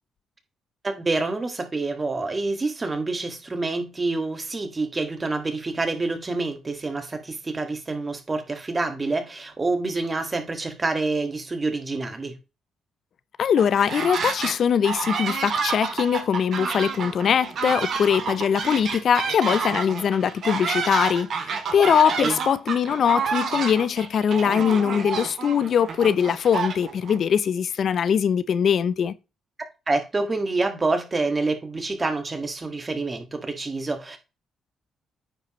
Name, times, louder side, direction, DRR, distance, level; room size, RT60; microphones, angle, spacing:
voice 1, 0.8-12.3 22.2-22.4 29.9-34.2, right 3 dB, 25° right, 1.8 m, -27 dB
voice 2, 13.4-29.1, left 7 dB, 60° left, 0.5 m, -22 dB
sound 1, 13.6-14.5 14.8-27.2, right 5 dB, 60° right, 1.8 m, -29 dB
9.2 x 5.4 x 3.1 m
cardioid pair, 90°, 0 cm